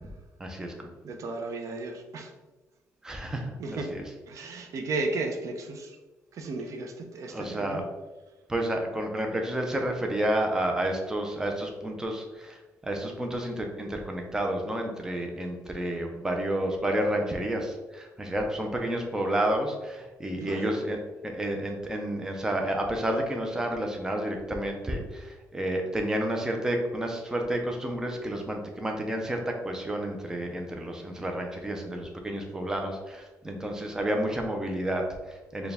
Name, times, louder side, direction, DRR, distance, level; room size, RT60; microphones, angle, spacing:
voice 1, 0.4-0.9 3.0-4.0 7.3-7.8 8.5-35.7, right 1 dB, 10° right, 2 dB, 0.5 m, -30 dB
voice 2, 1.0-2.3 3.6-3.9 4.3-6.0 6.3-7.8 20.4-20.7, right 3 dB, 55° right, 3 dB, 0.5 m, -34 dB
4.3 x 2.2 x 3.4 m, 1.2 s
cardioid pair, 130°, 6 cm